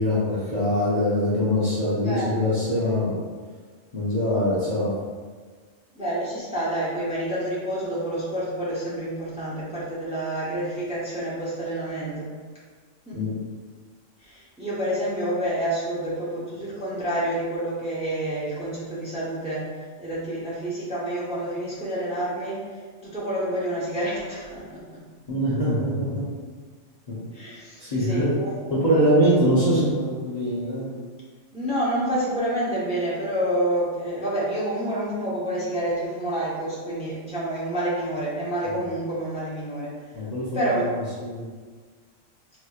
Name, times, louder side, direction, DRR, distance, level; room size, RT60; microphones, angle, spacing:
voice 1, 0.0-3.1 3.9-4.9 13.1-13.3 25.3-26.2 27.1-27.2 27.8-28.3 28.7-30.9 40.1-41.5, equal, 35° left, -10 dB, 0.8 m, -23 dB
voice 2, 2.0-2.6 5.9-12.3 13.1-13.3 14.2-25.0 27.3-28.7 31.5-39.9 40.5-40.9, right 1 dB, 5° right, -9 dB, 0.7 m, -28 dB
4.0 x 3.0 x 2.4 m, 1.5 s
omnidirectional pair, 1.3 m